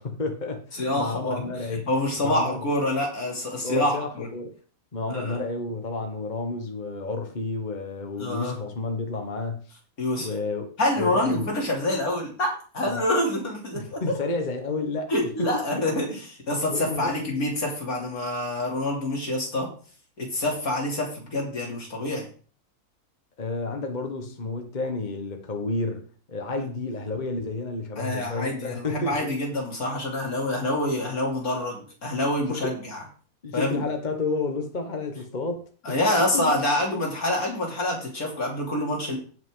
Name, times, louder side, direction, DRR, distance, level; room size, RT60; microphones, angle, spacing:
voice 1, 0.0-1.9 2.2-2.6 3.6-4.5 4.9-9.7 10.1-10.7 11.0-11.5 12.9-13.0 13.7-15.1 15.4-16.2 16.7-17.1 23.4-29.3 32.5-32.7 33.4-36.0 36.3-36.6 36.9-37.0, left 3 dB, 30° left, 1.4 m, -31 dB
voice 2, 0.8-1.5 1.9-4.3 5.1-5.4 8.2-8.6 10.0-10.3 10.8-14.2 15.1-16.2 16.5-19.7 20.2-22.3 28.0-33.0 33.5-33.8 35.9-39.2, left 1 dB, 75° left, 3.6 m, -26 dB
17.0 x 5.7 x 3.8 m
omnidirectional pair, 1.5 m